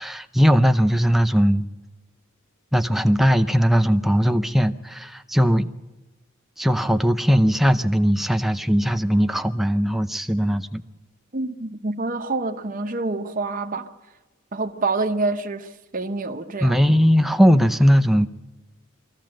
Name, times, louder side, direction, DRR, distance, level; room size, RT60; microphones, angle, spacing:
voice 1, 0.0-1.7 2.7-5.7 6.6-10.8 16.6-18.3, equal, ahead, 0.6 m, -19 dB
voice 2, 11.3-13.9 14.5-16.8, right 3 dB, 40° right, 0.8 m, -27 dB
22.5 x 15.0 x 7.6 m
head